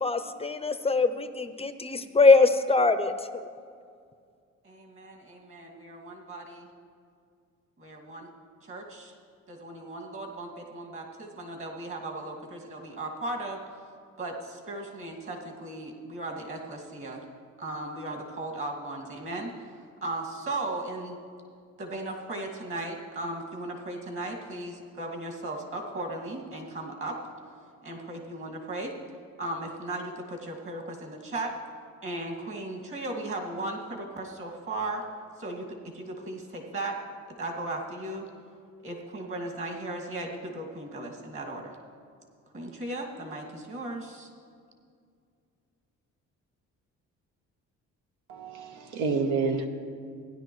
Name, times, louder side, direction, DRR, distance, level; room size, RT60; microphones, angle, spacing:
voice 1, 0.0-3.4, left 3 dB, 20° left, 10 dB, 0.5 m, -22 dB
voice 2, 4.6-6.7 7.8-8.3 8.7-9.1 9.5-13.6 14.2-17.2 17.6-19.5 20.0-21.2 21.8-27.2 27.8-28.9 29.4-31.5 32.0-35.0 35.4-35.6 35.9-37.0 37.4-38.3 38.8-41.7 42.5-44.3, right 2 dB, 45° right, 0 dB, 2.2 m, -36 dB
voice 3, 48.3-49.7, right 4 dB, 90° right, 4 dB, 1.1 m, -28 dB
16.0 x 10.5 x 3.1 m, 2.2 s
cardioid pair, 90°, 30 cm